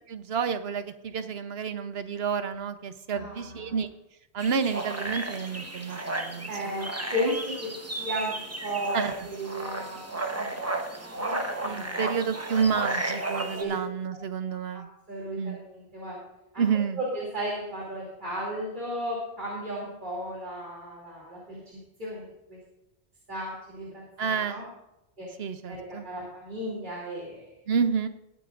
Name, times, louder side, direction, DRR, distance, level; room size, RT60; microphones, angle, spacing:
voice 1, 0.0-3.9 4.3-6.5 8.9-9.1 11.6-14.9 15.4-15.6 16.6-17.0 24.2-24.7 25.4-26.1 27.7-28.1, right 6 dB, 65° right, 10 dB, 1.0 m, -29 dB
voice 2, 3.1-3.8 6.5-12.1 13.6-13.8 14.7-16.2 16.5-16.7 17.0-22.6 23.3-24.7 25.2-25.3 25.7-27.5, equal, 45° right, -5 dB, 3.0 m, -35 dB
sound 1, 4.4-13.6, right 2 dB, 15° right, 0.9 m, -33 dB
20.0 x 9.3 x 2.5 m, 0.89 s
omnidirectional pair, 1.1 m